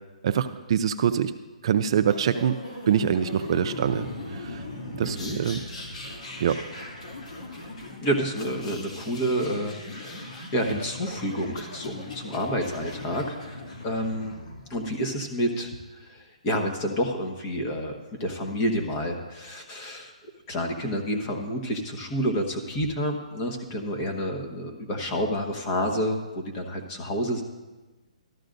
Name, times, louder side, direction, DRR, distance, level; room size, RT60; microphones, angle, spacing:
voice 1, 0.2-1.3 1.6-2.6 2.9-4.1 4.3-4.6 4.9-5.6 6.4-6.6, right 8 dB, 45° right, 9 dB, 0.5 m, -24 dB
sound 1, 2.1-14.8, left 2 dB, 75° left, 2.6 m, -39 dB
voice 2, 5.0-5.4 8.0-14.3 14.7-15.7 16.0-20.1 20.5-27.4, equal, 25° left, 3 dB, 1.4 m, -29 dB
13.5 x 13.0 x 2.6 m, 1.2 s
hypercardioid pair, 160°, 4 cm